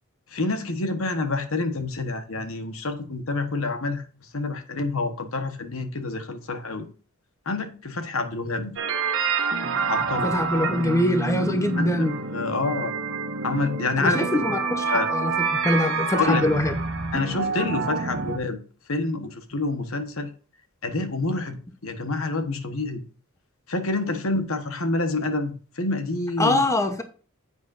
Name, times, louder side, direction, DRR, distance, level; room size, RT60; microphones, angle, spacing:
voice 1, 0.3-4.1 4.3-6.9 7.4-8.8 9.9-10.3 11.8-11.9 12.3-12.9 13.4-14.3 14.9-15.1 16.2-16.4 17.1-18.6 18.9-20.3 20.8-23.0 23.7-26.6, left 3 dB, 70° left, 1.3 m, -27 dB
sound 1, 8.8-18.4, right 4 dB, 65° right, 1.4 m, -27 dB
voice 2, 10.2-12.2 14.0-16.7 26.4-27.0, left 1 dB, 15° left, 0.9 m, -23 dB
10.0 x 8.2 x 2.6 m
head